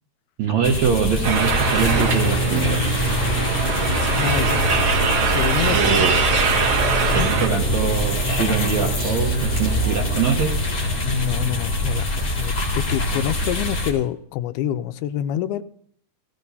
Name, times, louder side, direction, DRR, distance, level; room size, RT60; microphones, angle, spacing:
voice 1, 0.4-2.8 5.7-6.1 7.1-10.6, right 6 dB, 70° right, 1 dB, 1.7 m, -23 dB
sound 1, 0.6-13.9, left 1 dB, 25° left, 4.1 m, -24 dB
sound 2, 1.2-7.5, right 5 dB, 55° right, 2.8 m, -23 dB
sound 3, 1.7-12.1, right 4 dB, 90° right, 5.3 m, -28 dB
voice 2, 3.7-4.6 5.3-5.8 7.1-7.4 11.0-15.6, left 11 dB, 80° left, 11 dB, 2.5 m, -27 dB
18.0 x 16.5 x 2.7 m, 0.65 s
omnidirectional pair, 4.6 m